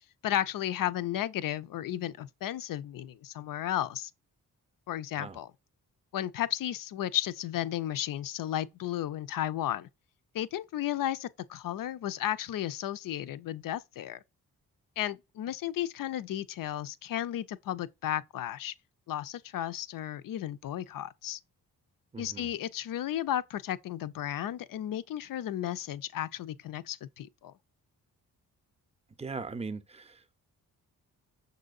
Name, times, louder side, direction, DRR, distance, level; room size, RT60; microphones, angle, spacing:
voice 1, 0.2-4.1 4.9-5.5 6.1-9.9 10.3-14.2 15.0-18.7 19.1-21.4 22.2-27.5, left 12 dB, 55° left, 0.5 m, -34 dB
voice 2, 22.1-22.5 29.2-30.4, right 4 dB, 15° right, 0.6 m, -40 dB
6.0 x 2.7 x 2.4 m
supercardioid pair, 45°, 41 cm